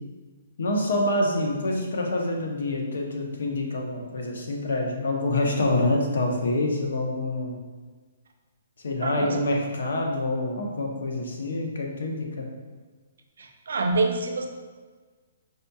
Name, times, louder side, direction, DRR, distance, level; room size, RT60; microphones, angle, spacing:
voice 1, 0.6-7.6 8.8-12.5, left 2 dB, 75° left, 0 dB, 0.7 m, -26 dB
voice 2, 9.0-9.4 13.4-14.5, right 3 dB, 80° right, 4 dB, 0.5 m, -26 dB
4.9 x 2.7 x 2.3 m, 1.4 s
hypercardioid pair, 170°, 0 cm